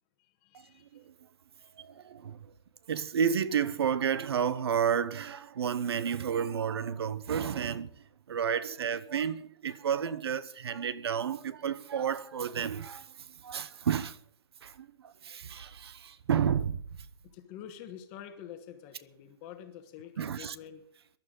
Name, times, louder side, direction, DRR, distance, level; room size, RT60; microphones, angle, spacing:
voice 1, 0.2-1.1 1.6-1.7 17.2-20.8, left 9 dB, 20° left, 1.2 m, -47 dB
voice 2, 1.8-2.5 2.9-14.2 14.6-16.8 20.2-20.6, right 8 dB, 75° right, 1.0 m, -31 dB
22.5 x 11.5 x 3.9 m
hypercardioid pair, 180°, 13 cm